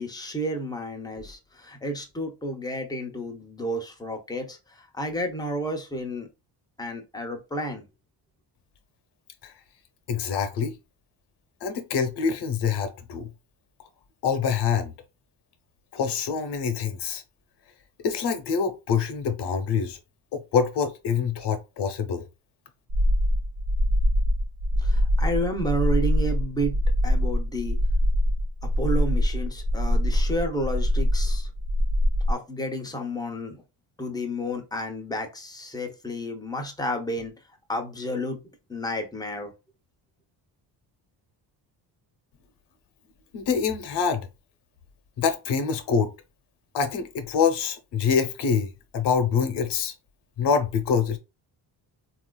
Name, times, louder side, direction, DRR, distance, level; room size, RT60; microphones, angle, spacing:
voice 1, 0.0-4.6 5.0-6.3 6.8-7.9 24.8-26.8 27.0-27.8 28.8-31.5 32.3-33.6 34.0-37.3 37.7-38.4 38.7-39.5, equal, 10° left, 0.5 m, -31 dB
voice 2, 10.1-10.8 11.6-13.3 14.2-14.9 15.9-17.2 18.0-20.0 20.3-22.3 43.3-44.3 45.2-46.1 46.7-49.9 50.4-51.2, left 6 dB, 65° left, 0.8 m, -25 dB
sound 1, 22.9-32.3, equal, 80° right, 0.9 m, -23 dB
4.1 x 2.4 x 2.2 m
cardioid pair, 155°, 43 cm